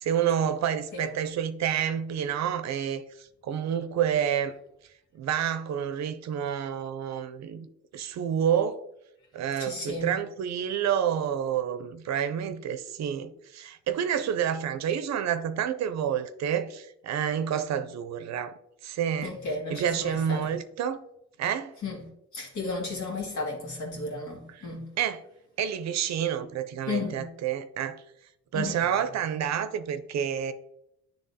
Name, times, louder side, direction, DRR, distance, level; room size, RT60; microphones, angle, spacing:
voice 1, 0.0-4.5 5.1-7.7 7.9-8.8 9.3-19.3 19.7-21.0 21.4-21.7 25.0-25.2 25.6-28.0 28.5-30.5, right 9 dB, 65° right, 0.5 m, -29 dB
voice 2, 9.6-10.2 19.2-20.5 21.8-22.0 22.3-24.9 26.8-27.3 28.5-28.8, left 3 dB, 75° left, 2.1 m, -34 dB
10.0 x 3.4 x 2.7 m
cardioid pair, 90°, 30 cm